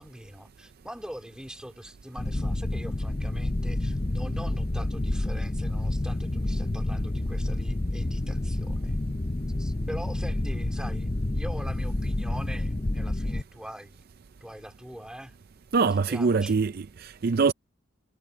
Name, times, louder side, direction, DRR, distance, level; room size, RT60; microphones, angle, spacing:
voice 1, 0.0-9.0 9.6-14.0 14.4-15.4 16.1-16.6, equal, 5° right, 3.2 m, -43 dB
sound 1, 2.2-13.4, left 1 dB, 25° left, 0.6 m, -29 dB
voice 2, 15.7-17.5, right 4 dB, 50° right, 0.4 m, -24 dB
head